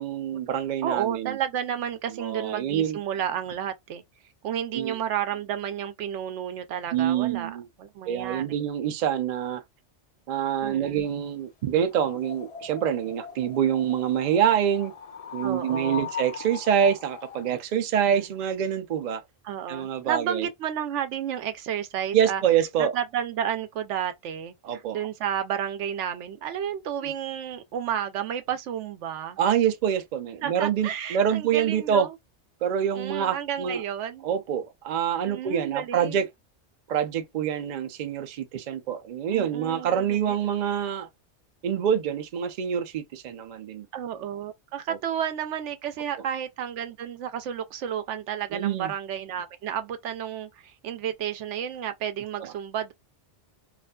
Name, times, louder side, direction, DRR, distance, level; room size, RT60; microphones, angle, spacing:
voice 1, 0.0-1.4 2.2-3.0 4.7-5.0 6.9-7.6 8.1-9.6 10.3-14.9 15.3-19.2 19.7-20.5 22.1-22.9 24.6-25.0 27.0-27.1 29.4-32.1 32.6-33.8 34.2-36.2 36.9-41.1 41.6-43.9 44.9-45.0 48.5-48.9 52.4-52.5, right 9 dB, 60° right, 0.5 m, -26 dB
voice 2, 0.8-4.0 4.4-7.5 7.8-8.6 10.6-11.1 15.4-16.1 18.1-18.2 19.4-22.4 22.8-29.4 30.4-32.1 32.9-34.3 35.3-36.2 39.3-40.4 43.9-52.9, right 9 dB, 85° right, 0.9 m, -31 dB
sound 1, 11.8-17.6, left 7 dB, 50° left, 0.4 m, -40 dB
2.4 x 2.4 x 2.2 m
omnidirectional pair, 1.2 m